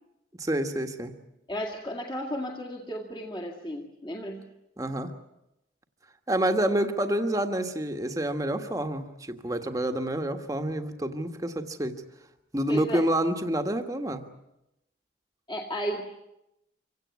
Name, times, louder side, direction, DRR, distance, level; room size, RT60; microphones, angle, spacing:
voice 1, 0.3-1.1 4.8-5.1 6.3-12.0 12.5-14.2, right 1 dB, 20° right, 6 dB, 1.5 m, -28 dB
voice 2, 1.5-4.5 12.7-13.1 15.5-16.0, equal, 25° left, -1 dB, 2.1 m, -34 dB
26.0 x 17.0 x 9.5 m, 0.89 s
head